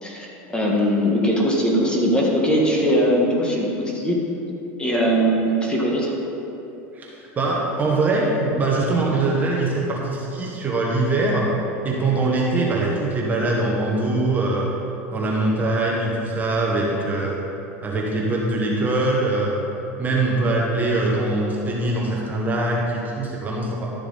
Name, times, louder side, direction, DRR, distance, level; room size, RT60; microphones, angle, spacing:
voice 1, 0.0-4.2 4.8-6.1, equal, 10° left, -3 dB, 1.7 m, -20 dB
voice 2, 6.9-11.5 11.8-14.7 15.1-17.4 17.8-19.6 20.0-23.9, right 2 dB, 25° right, -3 dB, 1.4 m, -22 dB
12.5 x 7.0 x 4.1 m, 3.0 s
supercardioid pair, 120°, 7 cm